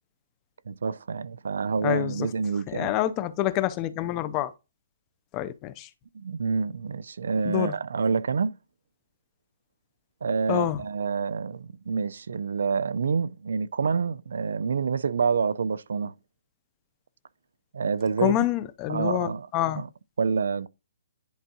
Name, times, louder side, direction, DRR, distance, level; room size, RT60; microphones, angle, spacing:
voice 1, 0.7-2.9 6.1-8.6 10.2-16.1 17.7-18.4 18.9-19.5 19.8-19.9 20.2-20.7, right 5 dB, 70° right, 0.5 m, -27 dB
voice 2, 1.8-2.3 2.7-4.5 5.3-5.9 7.4-7.7 10.5-10.8 18.2-19.8, left 13 dB, 15° left, 0.4 m, -27 dB
10.5 x 4.5 x 2.7 m
hypercardioid pair, 175°, 0 cm